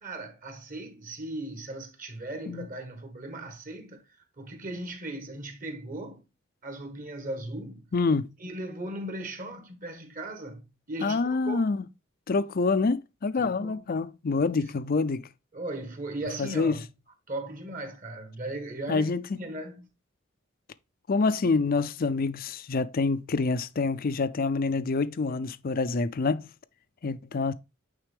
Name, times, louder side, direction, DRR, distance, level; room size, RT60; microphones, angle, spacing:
voice 1, 0.0-4.0 4.4-6.2 6.6-7.9 8.4-11.8 13.4-13.8 14.5-14.8 15.5-16.9 17.3-19.9, right 1 dB, 40° right, 1.6 m, -38 dB
voice 2, 7.9-8.3 11.0-11.8 12.3-15.3 16.4-16.8 18.9-19.4 21.1-26.5 27.0-27.5, left 4 dB, 45° left, 0.5 m, -26 dB
9.0 x 3.7 x 3.4 m
head